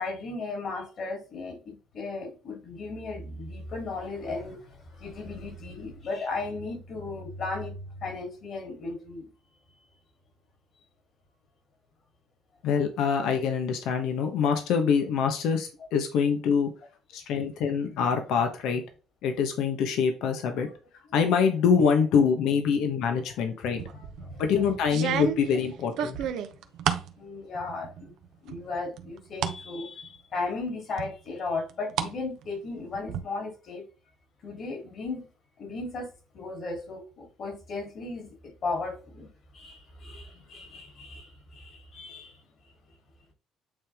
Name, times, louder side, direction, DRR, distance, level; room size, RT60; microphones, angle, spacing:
voice 1, 0.0-9.3 23.6-23.7 24.2-24.7 27.2-28.1 28.4-33.8 34.4-35.3 35.6-36.1 36.3-42.4, left 3 dB, 55° left, 3.4 m, -36 dB
voice 2, 12.6-16.7 17.1-18.8 19.2-20.7 21.1-23.8 24.4-26.2, left 6 dB, 75° left, 1.2 m, -25 dB
sound 1, 23.8-24.2 24.8-27.1 27.5-28.1 28.5-29.6 30.0-30.1 31.0-32.1 32.4-33.2, right 9 dB, 75° right, 0.9 m, -31 dB
8.8 x 3.4 x 3.6 m
supercardioid pair, 70°, 0 cm